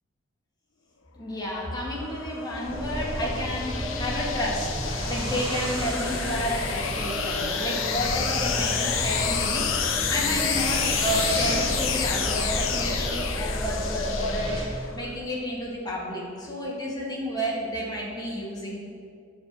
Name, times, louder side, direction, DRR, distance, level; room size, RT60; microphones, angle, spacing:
voice 1, 1.2-18.8, equal, 20° left, -5 dB, 2.0 m, -31 dB
sound 1, 1.6-15.0, left 7 dB, 85° left, 0.8 m, -30 dB
sound 2, 2.6-14.6, equal, 25° right, 1.8 m, -31 dB
9.0 x 4.8 x 7.5 m, 2.2 s
head